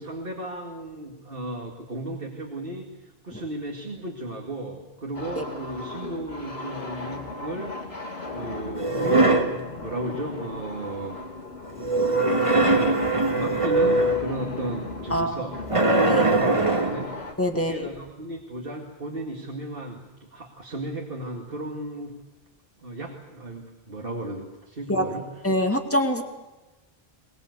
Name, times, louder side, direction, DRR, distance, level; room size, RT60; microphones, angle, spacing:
voice 1, 0.0-7.8 8.3-9.4 9.7-11.2 12.5-22.1 22.8-25.4, right 1 dB, 60° right, 0 dB, 2.4 m, -35 dB
sound 1, 5.1-17.3, left 3 dB, 85° left, 3.3 m, -37 dB
sound 2, 8.7-9.6 11.8-14.3 15.7-17.1, right 2 dB, 30° right, 2.0 m, -21 dB
voice 2, 15.1-15.4 16.1-16.3 17.4-17.7 24.9-25.1 25.4-26.2, equal, 15° left, 4 dB, 2.2 m, -24 dB
22.0 x 21.0 x 8.2 m, 1.1 s
omnidirectional pair, 1.0 m